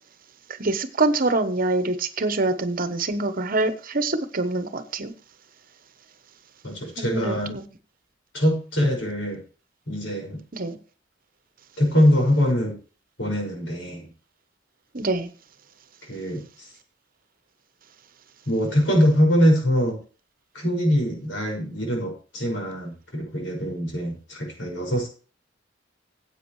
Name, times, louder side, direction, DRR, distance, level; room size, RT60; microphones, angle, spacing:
voice 1, 0.5-5.1 7.0-7.7 10.5-10.8 14.9-15.3, right 2 dB, 50° right, 1.1 m, -25 dB
voice 2, 6.6-7.5 8.3-9.4 9.9-10.4 11.8-12.8 13.2-14.1 16.0-16.7 18.5-20.0 20.5-25.1, equal, 85° left, 6.0 m, -23 dB
15.0 x 8.4 x 3.2 m
head